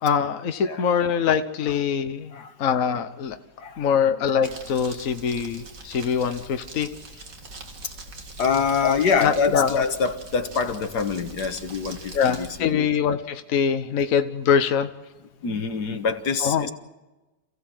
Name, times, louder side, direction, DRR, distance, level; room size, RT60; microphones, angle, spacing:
voice 1, 0.0-3.4 3.8-6.9 8.8-9.8 12.1-14.9 16.4-16.7, left 7 dB, 55° left, 8 dB, 1.4 m, -23 dB
Crumpling crinkling, 4.4-12.6, right 3 dB, 55° right, 2.5 m, -42 dB
voice 2, 8.4-12.9 15.4-16.7, left 5 dB, 80° left, 8 dB, 2.0 m, -25 dB
27.5 x 16.0 x 7.7 m, 1.1 s
omnidirectional pair, 1.7 m